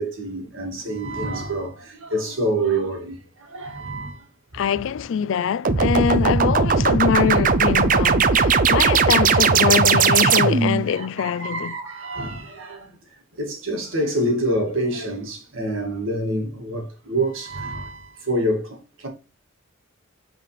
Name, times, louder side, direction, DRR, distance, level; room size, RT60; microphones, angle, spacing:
voice 1, 0.0-4.3 7.3-7.4 8.9-9.1 9.3-9.5 10.9-12.9 13.3-19.1, right 1 dB, 70° right, 2.1 m, -27 dB
voice 2, 4.5-11.7, left 7 dB, 60° left, 0.3 m, -23 dB
sound 1, 5.7-10.9, right 5 dB, 40° right, 0.5 m, -18 dB
8.5 x 4.1 x 3.2 m
head